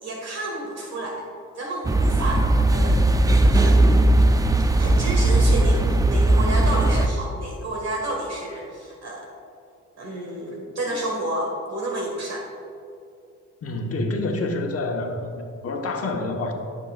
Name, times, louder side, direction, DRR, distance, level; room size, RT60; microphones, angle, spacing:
voice 1, 0.0-1.3 1.5-4.0 4.8-9.3 10.0-12.5, right 1 dB, 60° right, -1 dB, 1.6 m, -30 dB
sound 1, 1.8-7.1, right 1 dB, 10° right, 0.4 m, -18 dB
voice 2, 13.6-16.5, left 2 dB, 50° left, 2 dB, 1.3 m, -27 dB
13.5 x 6.6 x 2.4 m, 2.6 s
cardioid pair, 90°, 30 cm